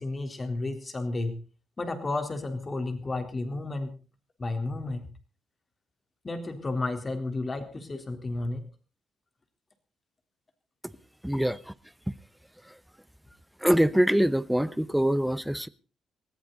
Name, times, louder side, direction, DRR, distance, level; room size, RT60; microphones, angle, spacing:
voice 1, 0.0-1.3 1.8-3.9 4.4-5.0 6.2-8.6, left 2 dB, 30° left, 3.8 m, -32 dB
voice 2, 11.2-11.6 12.1-12.2 12.6-12.8 13.6-15.7, equal, 5° right, 0.9 m, -24 dB
20.0 x 15.0 x 4.1 m
cardioid pair, 90°, 0 cm